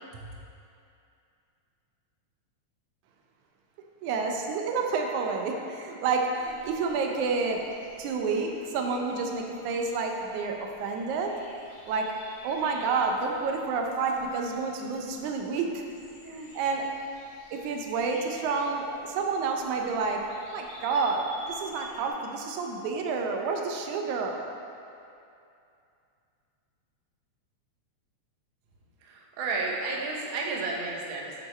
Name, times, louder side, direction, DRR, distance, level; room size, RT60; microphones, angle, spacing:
voice 1, 4.0-7.6 8.0-11.3 11.9-12.1 12.4-15.8 16.2-16.9 17.5-24.5, right 4 dB, 85° right, 2 dB, 2.1 m, -29 dB
sound 1, 6.4-22.1, equal, 80° left, 2.5 m, -51 dB
voice 2, 29.0-31.3, right 3 dB, 70° right, -1 dB, 1.2 m, -32 dB
8.4 x 4.8 x 4.2 m, 2.6 s
omnidirectional pair, 3.3 m